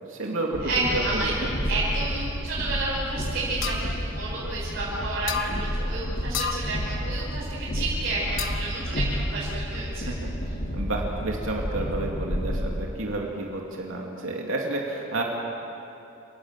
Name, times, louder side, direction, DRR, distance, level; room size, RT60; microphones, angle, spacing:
voice 1, 0.1-1.5 10.2-10.3 10.7-15.2, right 2 dB, 70° right, -1 dB, 2.8 m, -30 dB
Train, 0.5-12.7, equal, 45° left, 2.3 m, -31 dB
voice 2, 0.6-1.3 1.7-10.1, right 2 dB, 50° right, -9 dB, 6.0 m, -30 dB
sound 1, 3.6-3.9 5.3-5.5 6.3-6.7 8.4-8.8, left 8 dB, 60° left, 1.4 m, -30 dB
29.5 x 19.0 x 7.5 m, 2.9 s
head